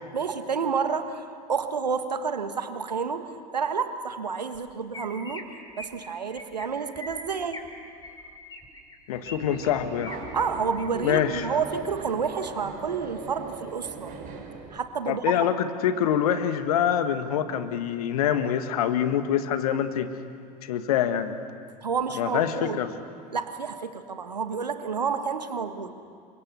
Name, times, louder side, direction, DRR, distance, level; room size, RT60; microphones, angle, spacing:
voice 1, 0.1-5.5 5.8-7.6 10.3-14.1 14.7-15.2 21.8-22.8 23.3-25.9, right 5 dB, 75° right, 9 dB, 1.5 m, -30 dB
Chirp tweet, 4.5-4.6 4.9-5.4 5.7-6.0 6.3-6.6 6.9-7.7 8.0-9.3 9.6-10.2 10.6-10.9 11.3-11.6, left 2 dB, 20° left, 4.7 m, -42 dB
voice 2, 9.1-10.1 11.0-11.5 15.1-20.1 20.6-21.3 22.2-22.9, left 9 dB, 60° left, 10 dB, 1.7 m, -25 dB
Subway metro underground, 9.1-14.8, right 4 dB, 40° right, 4.7 m, -40 dB
29.0 x 24.5 x 6.9 m, 2.4 s
figure-of-eight pair, 75°, 21 cm